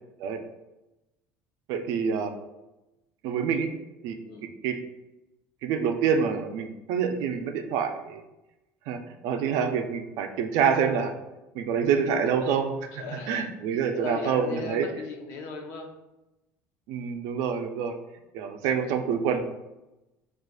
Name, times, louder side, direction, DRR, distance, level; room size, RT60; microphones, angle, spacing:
voice 1, 1.7-2.3 3.2-3.7 4.0-4.2 4.6-4.8 5.6-8.2 8.9-11.1 11.5-14.9 16.9-17.9 18.3-19.4, right 6 dB, 65° right, 6 dB, 0.4 m, -27 dB
voice 2, 12.9-16.0, left 4 dB, 60° left, 3 dB, 0.7 m, -38 dB
6.1 x 2.4 x 2.3 m, 0.98 s
cardioid pair, 165°, 6 cm